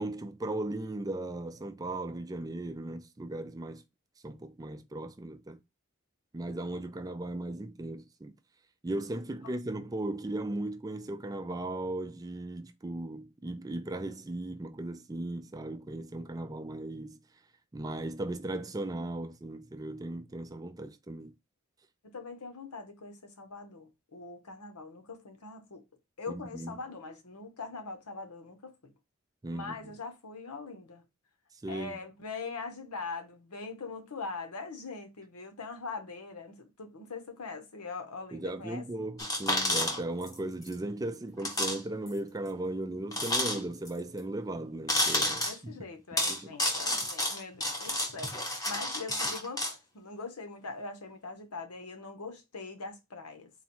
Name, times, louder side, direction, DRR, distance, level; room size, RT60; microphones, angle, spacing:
voice 1, 0.0-3.8 4.2-5.6 6.3-8.4 8.8-17.2 17.7-21.3 26.3-26.8 29.4-29.9 31.6-32.0 38.3-45.8 46.3-46.6, right 2 dB, 15° right, 0.4 m, -37 dB
voice 2, 22.0-25.8 26.2-28.9 29.5-31.0 31.7-38.8 45.5-53.5, left 4 dB, 90° left, 1.0 m, -42 dB
sound 1, 39.2-40.4 40.6-40.7 41.4-41.8 42.1-42.2 43.1-43.9 44.9-45.6 46.2-49.7, left 1 dB, 15° left, 1.0 m, -30 dB
4.0 x 2.4 x 4.3 m
head